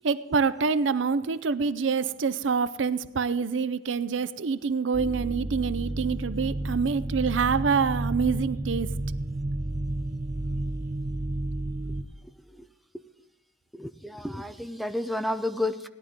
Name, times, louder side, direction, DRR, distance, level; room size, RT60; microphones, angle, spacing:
voice 1, 0.0-9.0, right 5 dB, 75° right, 15 dB, 0.5 m, -26 dB
sound 1, 4.9-12.0, right 1 dB, 45° right, 0.9 m, -31 dB
voice 2, 13.7-15.9, left 1 dB, ahead, 9 dB, 0.5 m, -31 dB
17.5 x 11.0 x 3.7 m, 1.0 s
head